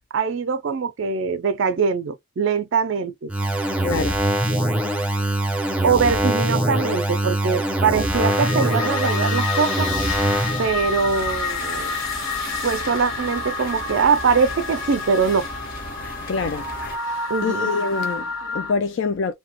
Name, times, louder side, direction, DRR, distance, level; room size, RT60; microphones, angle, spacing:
voice 1, 0.1-3.3 5.8-9.9 10.6-11.9 12.6-15.5 17.3-17.7, right 5 dB, 65° right, 0.4 m, -22 dB
sound 1, 3.3-10.7, right 1 dB, 5° right, 0.5 m, -23 dB
voice 2, 3.8-4.2 16.3-16.7 17.0-19.3, left 4 dB, 60° left, 0.4 m, -26 dB
sound 2, 8.0-18.7, left 4 dB, 75° left, 1.1 m, -29 dB
sound 3, 10.0-17.0, left 1 dB, 40° left, 0.9 m, -36 dB
2.8 x 2.2 x 2.9 m
head